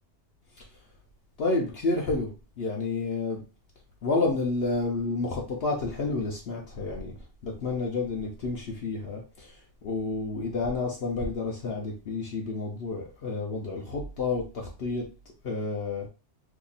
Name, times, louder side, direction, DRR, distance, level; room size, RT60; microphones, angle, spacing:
voice 1, 1.4-2.3 2.6-3.4 4.0-7.1 7.4-9.5 9.8-15.1 15.4-16.1, left 3 dB, 60° left, -1 dB, 0.9 m, -30 dB
2.8 x 2.4 x 3.9 m, 0.32 s
omnidirectional pair, 1.3 m